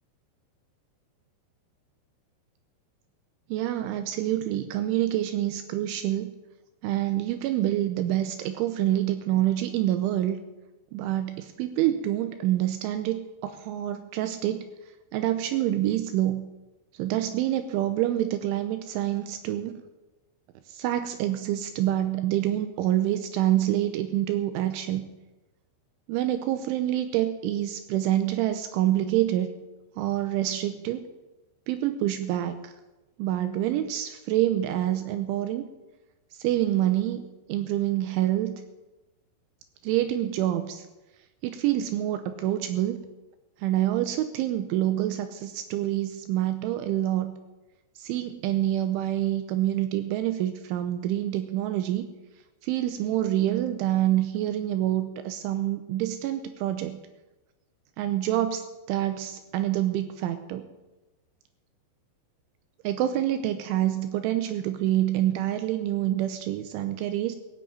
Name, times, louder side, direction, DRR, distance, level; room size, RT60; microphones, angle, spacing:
voice 1, 3.5-6.3 6.8-10.4 10.9-14.7 15.1-16.4 16.9-19.8 20.7-25.1 26.1-29.5 30.0-31.1 31.7-32.7 33.2-35.7 36.3-38.6 39.8-40.9 41.4-43.0 43.6-47.3 48.0-52.1 52.6-57.0 58.0-60.7 62.8-67.4, right 13 dB, 80° right, 9 dB, 3.1 m, -27 dB
16.0 x 8.2 x 8.8 m, 1.1 s
omnidirectional pair, 5.7 m